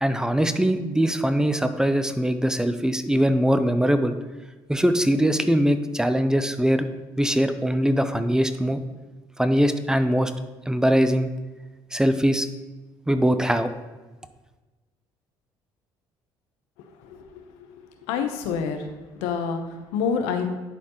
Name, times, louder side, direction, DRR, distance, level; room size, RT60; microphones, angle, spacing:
voice 1, 0.0-4.1 4.7-6.9 7.2-8.8 9.4-10.3 10.7-11.3 11.9-12.5 13.1-13.7, equal, 5° right, 10 dB, 0.6 m, -21 dB
voice 2, 17.0-17.4 18.1-18.9 19.2-20.5, left 6 dB, 80° left, 6 dB, 0.8 m, -27 dB
10.5 x 4.3 x 3.0 m, 1.2 s
hypercardioid pair, 65°, 11 cm